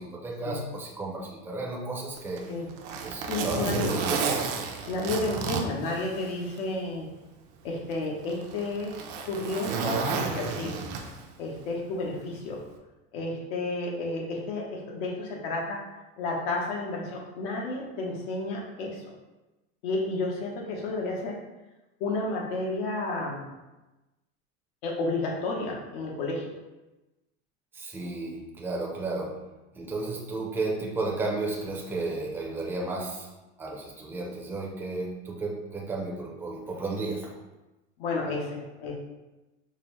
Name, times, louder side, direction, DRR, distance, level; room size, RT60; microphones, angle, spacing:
voice 1, 0.0-2.4 3.0-4.2 27.7-29.4 29.7-33.3 33.6-37.3, right 2 dB, 5° right, -3 dB, 0.5 m, -33 dB
Zipper (clothing), 2.2-6.6 7.0-7.1 7.9-11.4 12.5-12.7, right 5 dB, 60° right, 0.5 m, -32 dB
voice 2, 3.3-3.9 4.8-7.1 7.6-9.0 9.3-10.7 11.4-12.6 13.1-15.8 16.2-19.0 19.8-21.4 22.0-23.5 24.8-26.5 38.0-39.0, left 2 dB, 85° left, -1 dB, 1.0 m, -31 dB
5.2 x 2.1 x 3.0 m, 1.0 s
cardioid pair, 150°, 29 cm